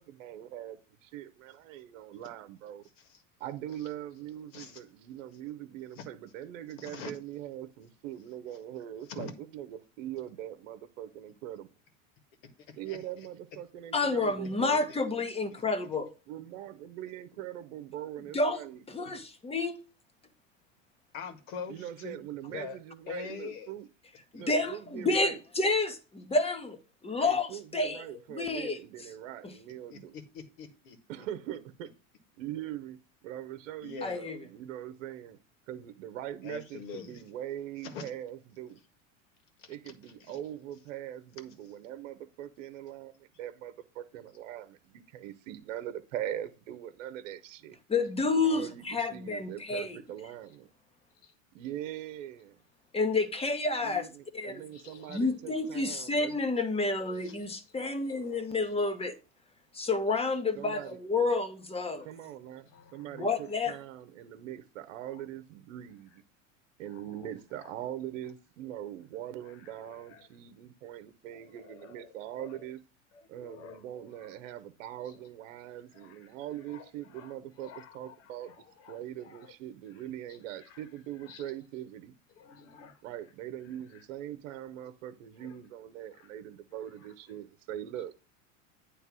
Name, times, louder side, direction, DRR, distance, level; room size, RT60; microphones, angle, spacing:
voice 1, 0.0-2.8 3.4-11.7 12.8-14.9 16.3-19.3 21.7-23.9 24.4-25.4 27.2-30.1 31.1-31.9 32.4-33.0 33.2-35.4 35.7-38.8 39.7-43.1 43.4-47.8 48.4-50.7 51.5-52.6 53.8-56.4 60.6-61.0 62.0-66.2 66.8-72.8 73.3-78.6 78.9-82.1 83.0-88.1, right 12 dB, 75° right, 0.9 m, -42 dB
voice 2, 6.8-7.1 9.1-9.3 12.7-13.0 15.1-15.2 15.5-15.6 21.1-22.8 23.1-23.7 24.3-24.4 29.9-31.3 33.8-34.2 36.4-37.2 37.8-38.1 39.6-39.7 40.2-40.4 51.2-51.3 54.7-55.3 57.2-57.5 58.1-58.5 62.7-63.4 65.1-65.2 66.9-67.3 67.5-67.8 69.5-70.3 71.3-72.7 73.1-74.3 75.1-75.2 75.9-76.4 76.7-79.5 80.3-80.8 81.2-81.5 82.3-83.0 83.9-84.0 85.4-85.6 86.1-86.3, left 5 dB, 70° left, 1.7 m, -46 dB
voice 3, 13.9-16.1 18.3-18.6 18.9-19.8 24.3-26.8 27.0-28.0 28.3-28.8 34.0-34.4 47.9-50.0 52.9-54.1 54.3-54.6 55.1-59.1 59.7-62.1 63.2-63.7, left 3 dB, 15° left, 1.2 m, -29 dB
9.3 x 3.3 x 6.1 m
hypercardioid pair, 100°, 38 cm